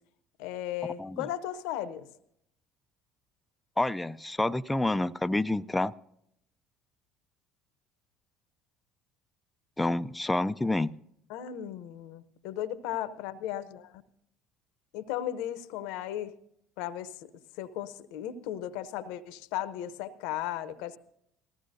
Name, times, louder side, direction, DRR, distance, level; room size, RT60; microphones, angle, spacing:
voice 1, 0.4-2.1 11.3-14.0 14.9-16.3 16.8-17.3 17.6-21.0, left 11 dB, 70° left, 15 dB, 0.8 m, -36 dB
voice 2, 3.8-5.9 9.8-10.9, left 2 dB, 10° left, 13 dB, 0.4 m, -28 dB
19.5 x 15.0 x 2.6 m, 0.74 s
hypercardioid pair, 65°, 0 cm